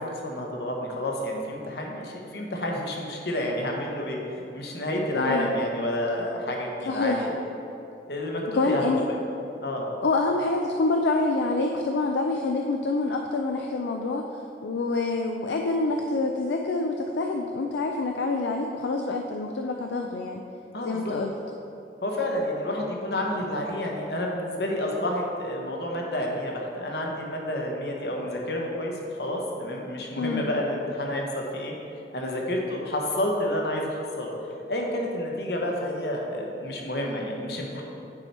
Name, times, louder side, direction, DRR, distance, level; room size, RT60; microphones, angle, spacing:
voice 1, 0.0-7.3 8.1-9.0 9.6-9.9 20.7-21.1 22.0-31.7 32.1-34.3 34.7-37.8, left 1 dB, 65° left, 0 dB, 1.1 m, -29 dB
voice 2, 5.1-5.5 6.9-7.2 8.5-9.1 10.0-14.2 14.6-20.4 20.8-21.3 30.2-30.5, left 3 dB, 80° left, 2 dB, 0.4 m, -26 dB
8.7 x 4.5 x 4.3 m, 2.8 s
head